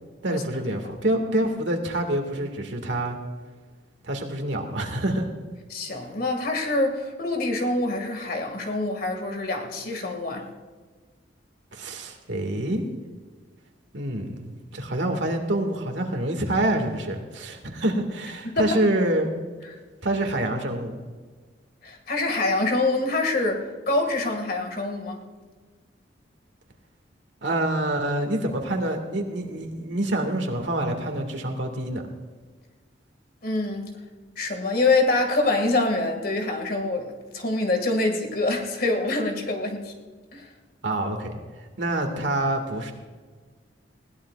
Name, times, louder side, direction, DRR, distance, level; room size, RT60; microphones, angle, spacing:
voice 1, 0.2-3.2 4.0-5.3 11.7-12.8 13.9-19.3 20.0-21.0 27.4-32.0 40.8-41.4 41.8-42.9, right 1 dB, 80° right, 4 dB, 2.0 m, -26 dB
voice 2, 5.7-10.5 18.4-18.8 21.8-25.2 33.4-34.0 34.4-39.9 40.3-40.5, left 2 dB, 55° left, 3 dB, 2.1 m, -25 dB
21.0 x 17.0 x 2.4 m, 1.4 s
head